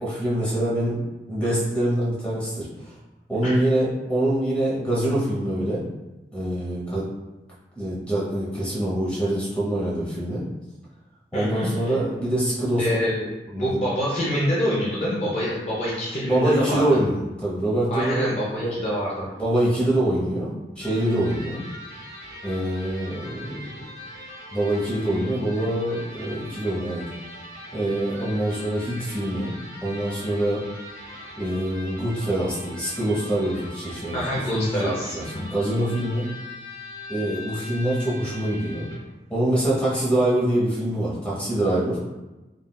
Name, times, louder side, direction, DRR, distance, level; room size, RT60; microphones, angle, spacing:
voice 1, 0.0-1.0 1.3-2.9 3.3-5.8 6.3-7.1 7.7-10.4 11.3-12.8 13.5-13.8 16.2-18.3 18.5-18.7 19.4-21.6 22.4-23.6 24.5-27.0 27.7-30.6 31.4-34.2 34.5-34.7 35.1-36.3 37.1-38.9 39.3-42.0, right 1 dB, 5° left, -8 dB, 0.9 m, -25 dB
voice 2, 11.3-11.9 12.8-16.8 17.9-19.3 34.1-35.6, equal, 35° left, -6 dB, 0.5 m, -26 dB
Electric guitar, 20.8-39.1, left 1 dB, 15° right, 1.1 m, -41 dB
3.5 x 2.2 x 2.2 m, 1.1 s
head